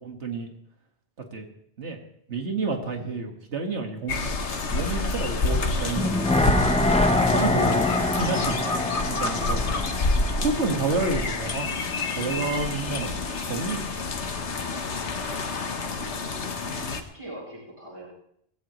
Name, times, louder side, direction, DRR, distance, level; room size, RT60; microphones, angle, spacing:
voice 1, 0.0-0.5 1.3-1.5 1.8-2.0 2.3-4.4 4.7-6.3 7.3-8.6 9.1-9.9 10.4-11.8 12.2-13.1 13.4-13.8, right 3 dB, 85° right, 3 dB, 2.2 m, -29 dB
sound 1, 4.1-17.0, left 3 dB, 85° left, 1.5 m, -28 dB
sound 2, 6.0-11.1 11.4-11.5, left 2 dB, 5° left, 0.7 m, -25 dB
voice 2, 15.3-16.0 16.7-18.1, right 1 dB, 30° right, -7 dB, 7.9 m, -43 dB
19.5 x 16.0 x 3.2 m, 0.70 s
omnidirectional pair, 1.1 m